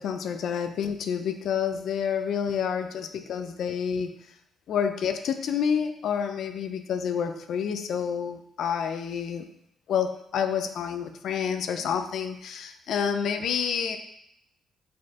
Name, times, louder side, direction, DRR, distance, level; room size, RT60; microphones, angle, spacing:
voice 1, 0.0-4.1 4.7-9.4 9.9-14.0, left 7 dB, 70° left, 7 dB, 0.6 m, -28 dB
6.4 x 4.3 x 3.6 m, 0.76 s
cardioid pair, 90°, 0 cm